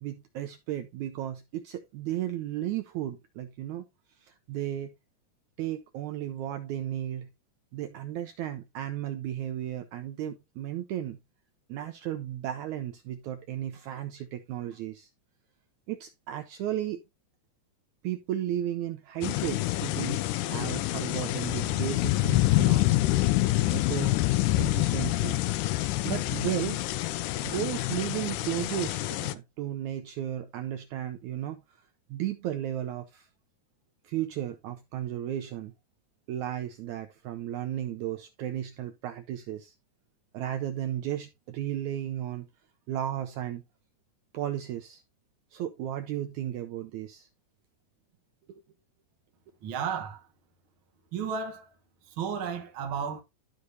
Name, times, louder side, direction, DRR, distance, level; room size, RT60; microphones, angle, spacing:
voice 1, 0.0-3.8 4.2-5.0 5.6-7.3 7.7-11.2 11.7-15.1 15.9-17.0 18.0-22.8 23.7-24.2 24.6-25.4 26.0-26.8 27.4-31.6 32.1-33.3 34.0-35.7 36.3-39.7 40.3-42.5 42.9-43.6 44.3-45.0 45.5-47.3 48.5-48.6, right 11 dB, 80° right, 1.7 m, -34 dB
sound 1, 19.2-29.3, left 17 dB, 80° left, 2.0 m, -27 dB
voice 2, 49.6-50.3 51.1-51.7 52.0-53.2, right 6 dB, 60° right, 1.3 m, -33 dB
13.0 x 4.8 x 2.7 m
omnidirectional pair, 4.1 m